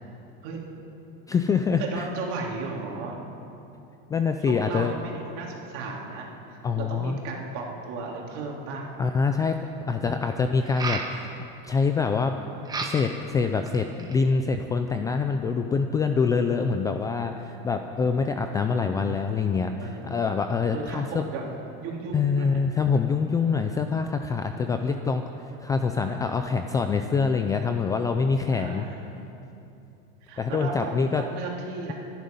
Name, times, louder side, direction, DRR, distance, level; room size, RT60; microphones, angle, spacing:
voice 1, 1.3-2.1 4.1-4.9 6.6-7.2 9.0-9.6 9.9-11.3 11.6-12.4 12.8-21.2 22.1-28.8 30.4-31.2, left 5 dB, 10° left, 6 dB, 0.3 m, -25 dB
voice 2, 1.8-3.2 4.4-8.9 9.9-10.1 16.6-16.9 19.8-20.1 20.7-22.6 28.5-29.0 30.2-31.9, right 4 dB, 50° right, -1 dB, 3.2 m, -35 dB
sound 1, 8.9-9.0 10.6-11.1 12.6-13.2 13.7-14.2, right 4 dB, 15° right, 1.2 m, -32 dB
24.5 x 10.5 x 5.4 m, 2.8 s
supercardioid pair, 155°, 29 cm